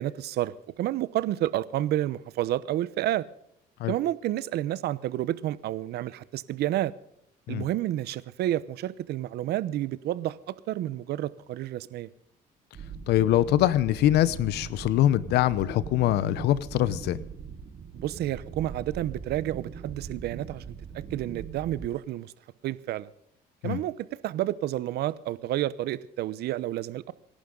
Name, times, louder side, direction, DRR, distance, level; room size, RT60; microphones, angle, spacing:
voice 1, 0.0-3.2 3.9-6.9 7.5-12.1 17.9-20.6 21.1-22.3 22.6-23.1 23.6-27.1, right 13 dB, 75° right, 0.9 m, -30 dB
sound 1, 12.7-21.9, right 6 dB, 45° right, 1.9 m, -40 dB
voice 2, 13.1-17.2 23.6-23.8, left 13 dB, 80° left, 0.8 m, -23 dB
26.5 x 11.5 x 3.9 m
cardioid pair, 110°, 17 cm